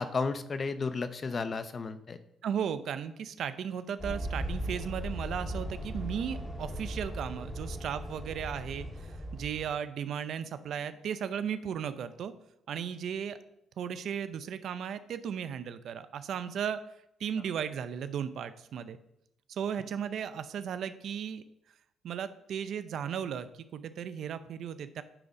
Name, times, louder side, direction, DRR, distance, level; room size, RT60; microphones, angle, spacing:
voice 1, 0.0-2.2, left 4 dB, 40° left, 11 dB, 0.6 m, -33 dB
voice 2, 2.4-9.1 9.3-12.3 12.7-13.4 13.8-16.8 17.2-19.0 19.5-21.4 22.0-25.0, right 8 dB, 70° right, 12 dB, 0.5 m, -35 dB
sound 1, 4.0-9.7, equal, 15° left, 1.9 m, -38 dB
8.9 x 4.0 x 4.9 m, 0.78 s
cardioid pair, 90°, 0 cm